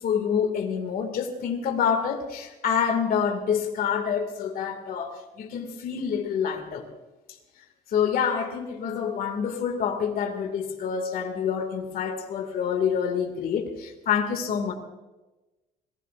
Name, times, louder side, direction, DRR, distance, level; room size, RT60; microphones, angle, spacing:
voice 1, 0.0-6.9 7.9-14.7, left 7 dB, 60° left, 4 dB, 2.3 m, -27 dB
26.5 x 19.5 x 2.6 m, 1.1 s
cardioid pair, 110°, 17 cm